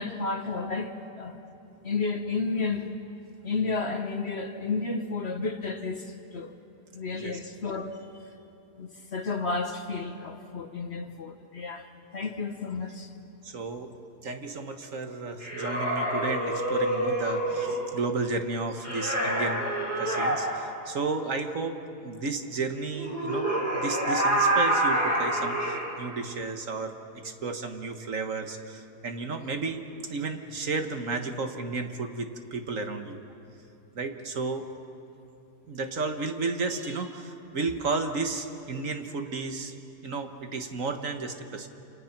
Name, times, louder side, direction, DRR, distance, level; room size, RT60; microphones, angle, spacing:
voice 1, 0.0-1.4 1.8-2.9 3.4-6.5 6.9-7.9 8.8-11.9 12.1-13.1, left 4 dB, 45° left, 6 dB, 1.3 m, -32 dB
voice 2, 13.4-13.9 14.2-21.8 22.0-26.9 27.2-33.2 33.9-34.7 35.7-39.7 40.0-41.7, right 3 dB, 55° right, 6 dB, 1.7 m, -33 dB
sound 1, 15.4-17.8 18.8-20.4 22.9-25.9, right 1 dB, 30° left, 6.2 m, -27 dB
28.5 x 27.5 x 6.0 m, 2.8 s
omnidirectional pair, 1.7 m